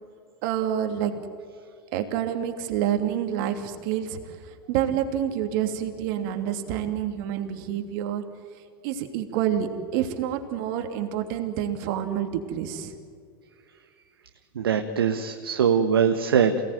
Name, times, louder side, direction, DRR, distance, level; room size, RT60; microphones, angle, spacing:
voice 1, 0.4-1.1 1.9-8.2 8.8-12.9, right 10 dB, 55° right, 6 dB, 2.9 m, -28 dB
voice 2, 14.5-16.7, right 7 dB, 80° right, 6 dB, 1.5 m, -22 dB
28.0 x 18.5 x 9.4 m, 2.2 s
hypercardioid pair, 90°, 12 cm